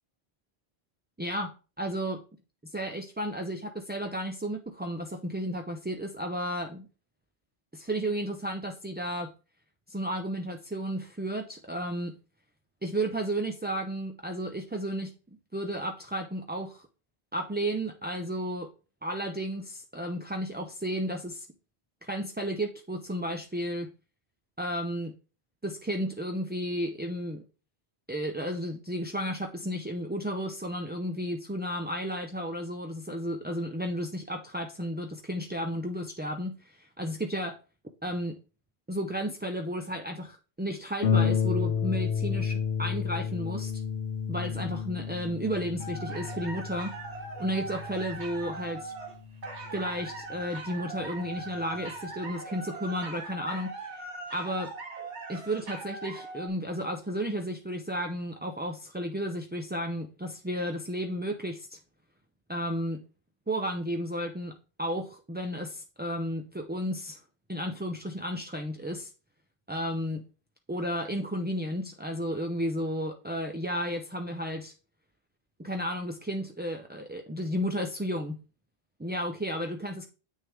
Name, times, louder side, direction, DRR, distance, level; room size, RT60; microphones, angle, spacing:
voice 1, 1.2-2.2 2.6-6.9 7.7-9.3 9.9-12.1 12.8-15.1 15.5-16.9 17.3-18.7 19.0-21.5 22.0-23.9 24.6-25.2 25.6-27.4 28.1-37.6 38.0-38.4 38.9-43.7 44.3-47.0 47.4-48.9 49.7-54.0 54.3-54.7 55.3-61.8 62.5-63.0 63.5-67.2 67.5-69.1 69.7-70.2 70.7-74.7 75.6-78.4 79.0-80.1, equal, 15° right, 4 dB, 0.4 m, -33 dB
Harp, 41.0-50.2 51.0-51.1 51.6-51.7, left 6 dB, 65° left, 0.9 m, -31 dB
sound 1, 45.8-56.5, right 3 dB, 90° right, 1.7 m, -40 dB
8.3 x 6.3 x 3.4 m, 0.33 s
omnidirectional pair, 1.1 m